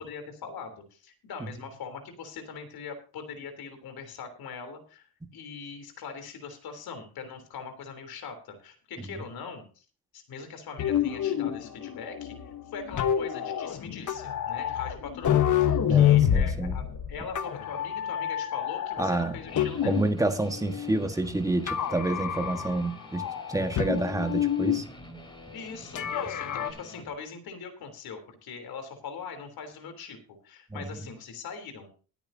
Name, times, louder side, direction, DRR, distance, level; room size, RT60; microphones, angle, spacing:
voice 1, 0.0-9.8 10.1-12.3 12.7-16.8 17.1-20.1 25.5-30.2 30.4-31.9, left 5 dB, 85° left, 3.5 m, -41 dB
sound 1, 10.8-20.2 20.5-21.3 21.7-22.9 23.1-24.8 26.0-26.7, left 10 dB, 55° left, 1.2 m, -27 dB
voice 2, 15.8-16.8 19.0-19.4 19.8-24.8 30.7-31.1, right 2 dB, 10° right, 1.5 m, -29 dB
Guitar, 19.5-27.1, equal, 15° left, 3.4 m, -47 dB
20.0 x 9.1 x 2.8 m
cardioid pair, 125°, 36 cm